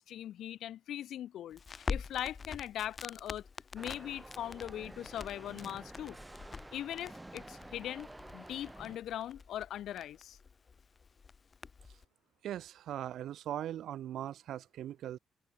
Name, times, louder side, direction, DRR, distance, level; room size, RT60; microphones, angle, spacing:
voice 1, 0.0-3.4 3.7-6.2 6.7-8.1 8.3-10.4, left 11 dB, 75° left, 1.8 m, -40 dB
Crackle, 1.5-12.0, left 5 dB, 35° left, 0.9 m, -45 dB
sound 1, 3.8-9.0, right 1 dB, 10° right, 0.8 m, -50 dB
voice 2, 12.4-15.2, right 11 dB, 75° right, 1.0 m, -40 dB
cardioid pair, 90°, 0 cm